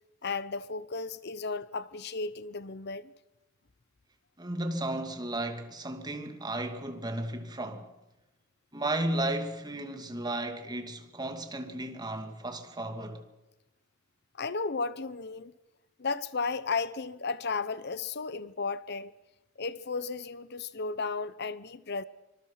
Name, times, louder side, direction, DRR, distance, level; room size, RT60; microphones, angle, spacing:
voice 1, 0.2-3.1 14.4-15.5 16.0-19.1 19.6-22.0, left 4 dB, 55° left, 0.9 m, -34 dB
voice 2, 4.4-7.9 8.7-13.2, right 1 dB, 20° right, 2.6 m, -34 dB
26.0 x 25.5 x 5.8 m
head